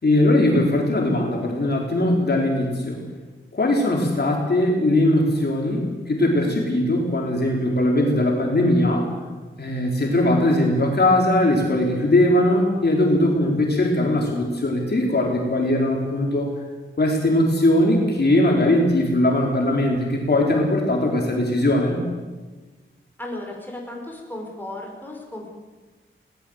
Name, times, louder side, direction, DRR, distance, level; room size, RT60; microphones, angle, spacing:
voice 1, 0.0-3.0 3.5-9.1 9.6-16.5 17.0-22.0, left 1 dB, 50° left, -1 dB, 4.2 m, -20 dB
voice 2, 23.2-25.5, left 1 dB, 10° left, 0 dB, 5.5 m, -35 dB
20.5 x 19.0 x 8.0 m, 1.3 s
wide cardioid pair, 100°, 21 cm